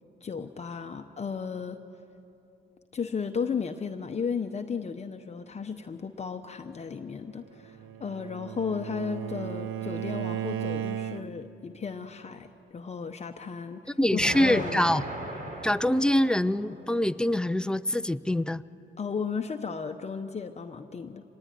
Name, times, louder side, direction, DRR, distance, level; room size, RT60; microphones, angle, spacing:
voice 1, 0.2-1.8 2.9-15.0 19.0-21.2, left 5 dB, 30° left, 5 dB, 0.9 m, -34 dB
Bowed string instrument, 7.6-11.6, right 10 dB, 75° right, 0.8 m, -35 dB
voice 2, 14.0-15.0 15.6-18.6, left 1 dB, 5° left, 14 dB, 0.5 m, -24 dB
Explosion, 14.2-17.2, right 1 dB, 40° right, 3.3 m, -38 dB
25.5 x 19.5 x 10.0 m, 2.8 s
cardioid pair, 105°, 20 cm